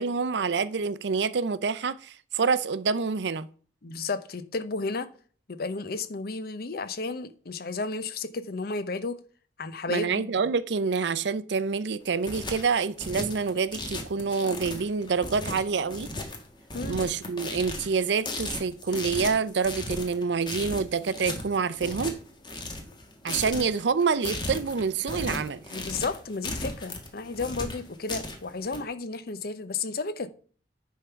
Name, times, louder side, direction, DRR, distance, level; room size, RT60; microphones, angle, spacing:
voice 1, 0.0-3.5 9.9-16.1 16.9-22.2 23.2-25.6, right 5 dB, 75° right, 0.5 m, -27 dB
voice 2, 3.8-5.1 5.5-9.2 9.6-10.5 16.7-17.0 23.5-23.6 25.7-30.3, left 3 dB, 60° left, 0.7 m, -33 dB
sound 1, 12.0-28.8, left 2 dB, 25° left, 1.4 m, -36 dB
10.0 x 3.7 x 5.7 m
head